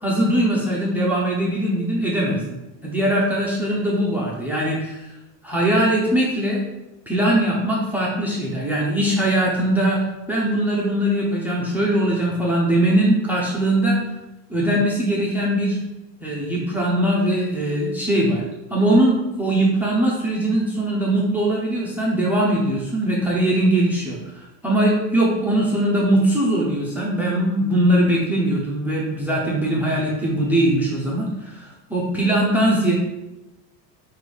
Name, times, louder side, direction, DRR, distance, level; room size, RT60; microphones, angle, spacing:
voice 1, 0.0-5.0 5.4-6.6 7.1-14.0 14.5-15.8 16.2-18.4 18.7-32.9, right 1 dB, 5° right, -4 dB, 0.7 m, -21 dB
5.8 x 2.7 x 3.4 m, 0.98 s
supercardioid pair, 130°, 49 cm